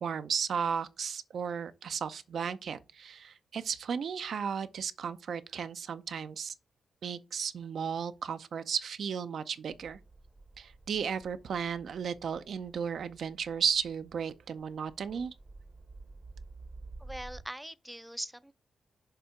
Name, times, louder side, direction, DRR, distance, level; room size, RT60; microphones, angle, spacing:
voice 1, 0.0-6.5 7.0-10.0 10.6-15.3, right 7 dB, 70° right, 0.5 m, -34 dB
sound 1, 9.7-17.4, right 3 dB, 45° right, 0.8 m, -52 dB
voice 2, 17.0-18.5, equal, 5° right, 0.5 m, -41 dB
6.7 x 2.8 x 5.8 m
supercardioid pair, 50°, 0 cm